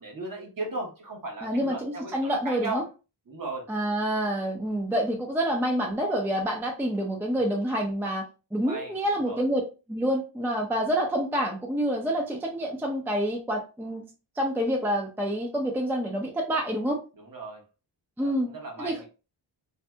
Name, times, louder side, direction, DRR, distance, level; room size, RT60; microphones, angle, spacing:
voice 1, 0.0-2.8 3.3-3.6 8.7-8.9 9.2-9.4 17.2-17.6 18.2-19.1, right 2 dB, 45° right, 1 dB, 1.0 m, -36 dB
voice 2, 1.4-2.8 3.7-8.2 8.5-9.6 9.9-14.0 14.4-17.0 18.2-18.5 18.8-19.0, equal, 5° right, 1 dB, 0.5 m, -27 dB
2.7 x 2.6 x 2.2 m, 0.31 s
wide cardioid pair, 90°, 47 cm